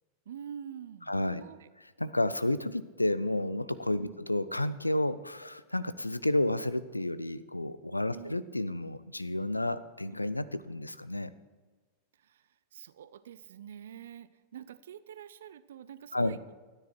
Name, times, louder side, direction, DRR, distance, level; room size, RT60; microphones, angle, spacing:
voice 1, 0.3-1.7 4.0-4.2 8.1-8.3 12.2-16.5, right 9 dB, 60° right, 15 dB, 0.5 m, -46 dB
voice 2, 1.1-1.4 2.0-11.3 16.1-16.4, left 1 dB, 85° left, 15 dB, 0.5 m, -31 dB
13.0 x 9.8 x 4.6 m, 1.3 s
figure-of-eight pair, 90°, 0 cm